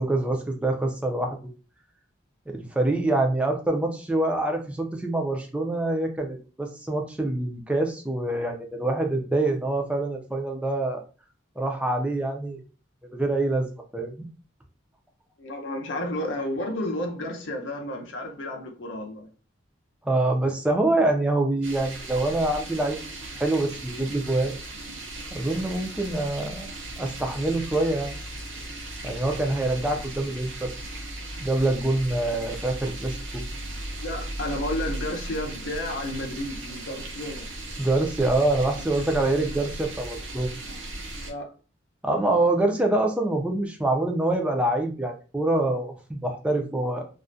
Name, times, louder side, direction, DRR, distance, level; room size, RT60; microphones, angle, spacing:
voice 1, 0.0-1.4 2.5-11.0 11.6-12.6 13.1-14.3 20.0-24.6 25.3-26.7 27.0-28.1 29.0-30.7 31.4-33.4 37.8-40.5 42.0-47.1, right 2 dB, 5° right, 0.3 m, -25 dB
voice 2, 15.4-19.3 34.0-37.5 41.2-41.5, left 1 dB, 70° left, 0.6 m, -32 dB
sound 1, 21.6-41.3, right 1 dB, 75° right, 0.6 m, -37 dB
2.3 x 2.1 x 2.5 m
head